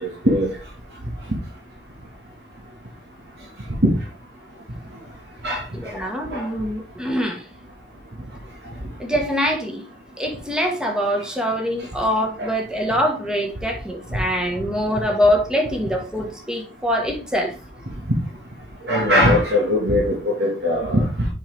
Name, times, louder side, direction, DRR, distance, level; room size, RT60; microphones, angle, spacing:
voice 1, 0.0-0.5 3.8-3.9 5.4-5.9 6.3-6.5 12.4-12.5 18.8-21.3, left 1 dB, 60° right, 1.8 m, -20 dB
voice 2, 5.8-7.4 9.0-9.8 10.2-17.5, equal, 5° right, 1.4 m, -23 dB
7.0 x 5.7 x 3.4 m
head